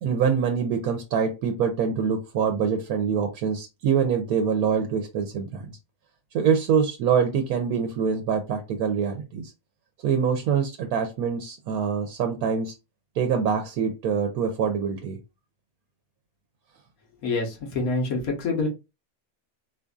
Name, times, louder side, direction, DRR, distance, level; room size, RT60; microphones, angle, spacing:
voice 1, 0.0-5.7 6.3-9.5 10.0-12.7 13.2-15.2, right 6 dB, 90° right, 5 dB, 1.1 m, -25 dB
voice 2, 17.2-18.7, left 3 dB, 80° left, 1 dB, 1.5 m, -26 dB
4.1 x 2.5 x 2.3 m, 0.26 s
omnidirectional pair, 1.5 m